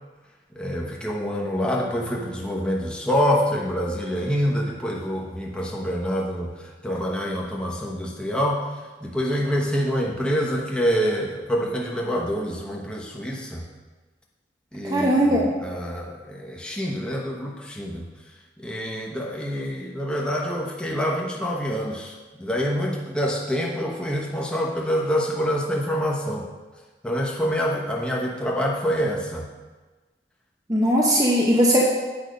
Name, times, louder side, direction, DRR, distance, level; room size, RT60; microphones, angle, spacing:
voice 1, 0.5-8.6 9.0-13.6 14.7-18.1 18.6-26.5 27.0-29.4, equal, 5° left, -3 dB, 1.0 m, -26 dB
voice 2, 14.8-15.5 30.7-31.8, equal, 20° right, -3 dB, 0.8 m, -19 dB
8.6 x 5.4 x 5.2 m, 1.3 s
head